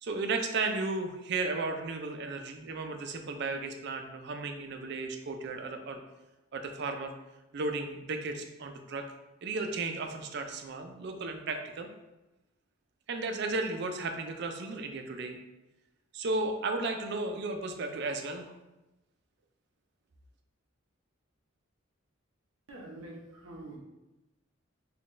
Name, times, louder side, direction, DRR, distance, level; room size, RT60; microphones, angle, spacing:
voice 1, 0.0-6.0 6.5-7.1 7.5-9.0 9.4-11.9 13.1-15.4 16.1-18.5, right 3 dB, 55° right, 5 dB, 0.4 m, -34 dB
voice 2, 22.7-23.8, right 2 dB, 90° right, -1 dB, 0.9 m, -45 dB
4.1 x 2.3 x 3.1 m, 1.0 s
head